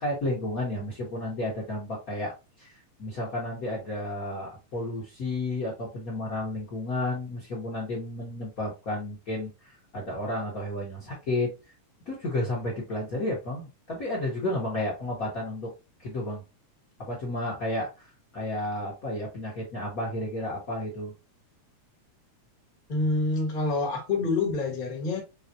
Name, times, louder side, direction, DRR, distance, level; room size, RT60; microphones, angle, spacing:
voice 1, 0.0-2.7 3.0-11.5 12.1-15.7 16.0-16.4 17.1-21.1, left 1 dB, 90° left, 0.7 m, -32 dB
voice 2, 22.9-25.2, left 3 dB, 45° left, 0.5 m, -27 dB
5.5 x 2.6 x 2.7 m
omnidirectional pair, 3.3 m